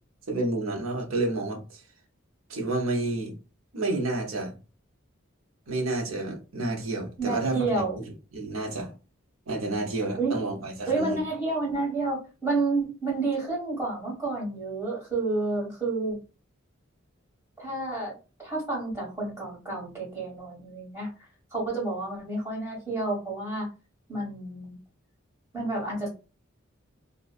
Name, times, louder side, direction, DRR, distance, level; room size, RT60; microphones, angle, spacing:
voice 1, 0.3-1.8 2.5-3.3 3.7-4.5 5.7-7.8 8.3-8.9 9.5-11.2, right 2 dB, 75° right, 0.7 m, -30 dB
voice 2, 7.2-8.0 10.2-10.4 10.9-16.2 17.6-18.1 18.4-21.1 21.5-23.7 24.1-24.8 25.5-26.1, right 3 dB, 15° right, 1.5 m, -30 dB
2.4 x 2.3 x 2.3 m
head